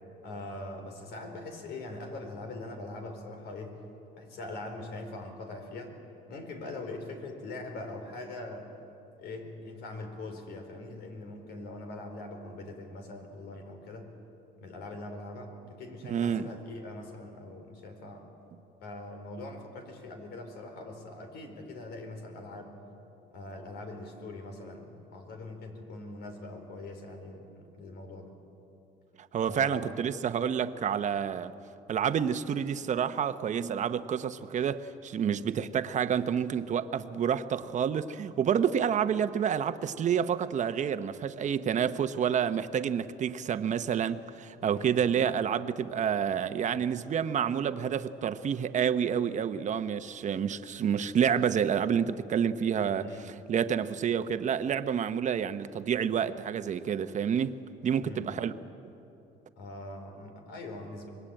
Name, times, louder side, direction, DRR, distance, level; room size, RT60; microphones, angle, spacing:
voice 1, 0.2-3.8 4.2-6.0 6.3-8.7 9.2-14.1 14.6-18.2 18.8-22.7 23.3-28.4 29.5-29.9 44.7-45.0 52.8-53.4 58.0-58.4 59.6-61.1, left 2 dB, 75° left, 4.5 m, -42 dB
voice 2, 16.1-16.5 29.3-31.5 31.9-53.1 53.5-58.5, right 8 dB, 45° right, 1.0 m, -29 dB
25.5 x 21.0 x 9.0 m
cardioid pair, 110°, 17 cm